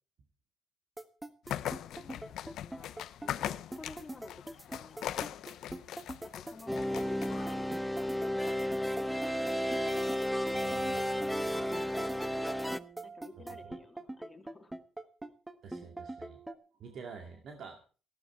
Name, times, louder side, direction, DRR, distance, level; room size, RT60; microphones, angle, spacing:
sound 1, 1.0-16.6, right 1 dB, 10° right, 1.4 m, -43 dB
sound 2, 1.5-7.7, left 11 dB, 80° left, 0.6 m, -40 dB
voice 1, 1.8-5.2 6.2-9.3 13.0-14.7, left 3 dB, 20° left, 4 dB, 2.5 m, -52 dB
sound 3, 6.7-12.8, equal, 5° left, 0.7 m, -33 dB
voice 2, 10.5-11.7 13.6-13.7 15.6-16.4 16.8-17.8, right 5 dB, 65° right, 3 dB, 2.2 m, -48 dB
14.5 x 12.0 x 4.6 m, 0.39 s
cardioid pair, 90°, 0 cm